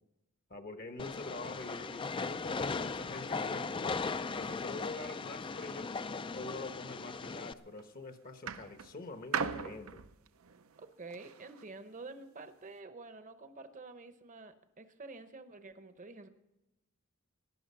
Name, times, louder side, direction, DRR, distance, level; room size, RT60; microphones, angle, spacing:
voice 1, 0.5-3.8 4.3-5.9 6.3-10.0, left 2 dB, 45° left, 8 dB, 1.1 m, -45 dB
Train, 1.0-7.5, left 4 dB, 25° left, 0.4 m, -38 dB
sound 1, 7.4-7.8 8.5-11.7 12.5-12.6, right 6 dB, 80° right, 0.7 m, -39 dB
voice 2, 10.8-16.3, right 3 dB, 35° right, 9 dB, 0.9 m, -49 dB
18.0 x 11.0 x 5.6 m, 0.95 s
head